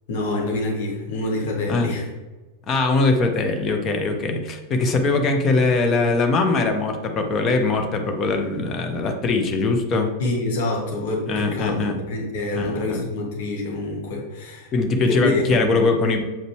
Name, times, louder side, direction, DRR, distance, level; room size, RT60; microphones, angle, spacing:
voice 1, 0.1-2.0 10.2-14.7 15.2-15.9, left 2 dB, 55° left, -1 dB, 1.5 m, -26 dB
voice 2, 2.7-10.1 11.3-11.9 12.5-13.0 14.7-16.2, left 3 dB, 30° left, 4 dB, 1.0 m, -21 dB
7.4 x 5.2 x 3.2 m, 1.2 s
figure-of-eight pair, 90°, 0 cm